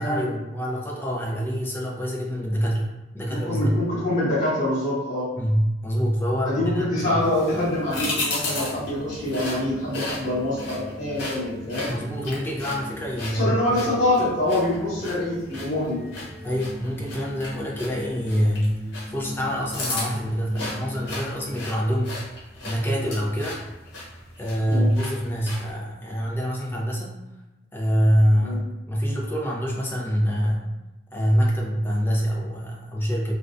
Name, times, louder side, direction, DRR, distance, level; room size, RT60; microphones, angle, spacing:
voice 1, 0.0-3.8 5.4-7.2 11.9-13.9 16.4-22.2 22.6-23.6 24.4-27.2 27.7-30.7 31.1-33.3, equal, 10° left, -3 dB, 0.4 m, -25 dB
voice 2, 3.3-5.3 6.4-11.9 13.3-16.0 24.7-24.9 28.4-28.6, left 1 dB, 45° left, -11 dB, 1.1 m, -25 dB
sound 1, 6.9-21.8, left 1 dB, 10° right, 0.9 m, -41 dB
sound 2, 7.2-25.7, left 2 dB, 90° left, 0.8 m, -35 dB
2.4 x 2.1 x 2.4 m, 1.0 s
head